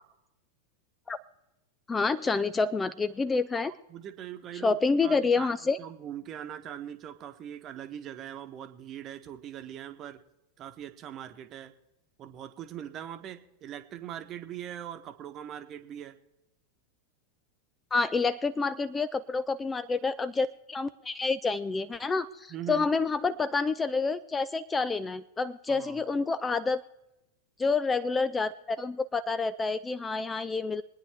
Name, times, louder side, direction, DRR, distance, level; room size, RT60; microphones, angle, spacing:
voice 1, 1.9-3.7 4.5-5.8 17.9-26.8 27.6-30.8, left 4 dB, 15° left, 15 dB, 0.4 m, -28 dB
voice 2, 3.6-4.8 5.0-5.5 5.8-10.2 10.6-11.7 12.2-16.1 22.5-22.9 25.7-26.0, right 10 dB, 30° right, 9 dB, 1.1 m, -41 dB
22.5 x 9.7 x 3.4 m, 0.89 s
figure-of-eight pair, 90°, 0 cm